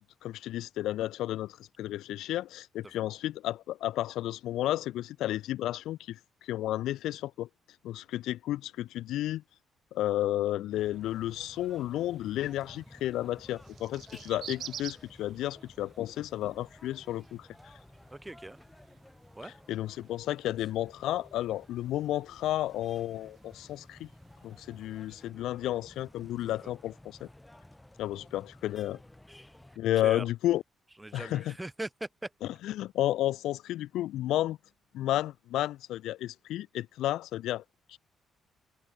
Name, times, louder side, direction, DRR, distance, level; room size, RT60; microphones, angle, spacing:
voice 1, 0.2-7.5 7.8-9.4 9.9-17.7 19.7-24.1 24.4-27.3 28.0-29.0 29.8-30.6 31.1-31.5 32.6-34.6 34.9-37.6 37.9-38.0, left 14 dB, 85° left, 0.4 m, -32 dB
sound 1, 10.7-29.8, left 1 dB, 10° left, 5.0 m, -54 dB
sound 2, 11.0-25.3, right 9 dB, 65° right, 1.1 m, -52 dB
voice 2, 18.1-18.6 19.3-19.6 26.4-26.7 30.0-30.3 31.0-32.3, right 1 dB, 10° right, 1.6 m, -41 dB
cardioid pair, 90°, 0 cm